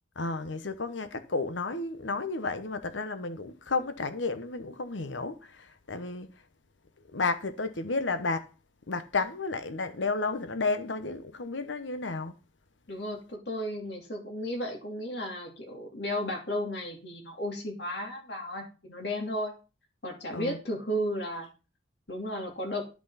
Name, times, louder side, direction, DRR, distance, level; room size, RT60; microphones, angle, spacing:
voice 1, 0.1-6.4 7.1-8.5 8.9-12.4 20.3-20.6, left 3 dB, 85° left, 1.1 m, -32 dB
voice 2, 12.9-19.5 20.0-21.5 22.1-22.8, equal, 65° left, 2.9 m, -34 dB
10.5 x 6.2 x 5.7 m
head